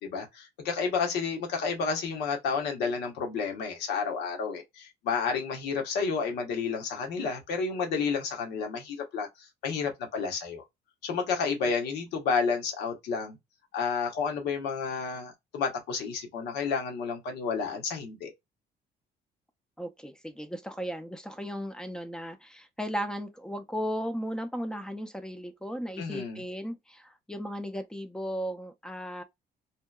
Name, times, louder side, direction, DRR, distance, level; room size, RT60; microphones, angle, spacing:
voice 1, 0.0-9.3 9.6-10.6 11.0-13.4 13.7-18.3 26.0-26.4, left 5 dB, 80° left, 0.9 m, -31 dB
voice 2, 19.8-29.2, equal, 5° left, 0.4 m, -36 dB
2.8 x 2.1 x 2.2 m
cardioid pair, 110°, 17 cm